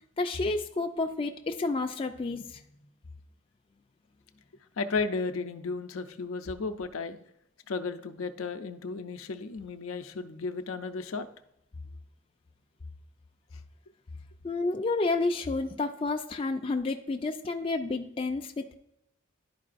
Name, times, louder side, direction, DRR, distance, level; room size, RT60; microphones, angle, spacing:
voice 1, 0.2-2.6 14.4-18.7, left 3 dB, 25° left, 4 dB, 0.4 m, -30 dB
voice 2, 4.8-7.2 7.7-11.3, left 4 dB, 75° left, 8 dB, 0.5 m, -34 dB
11.0 x 4.7 x 2.5 m, 0.80 s
head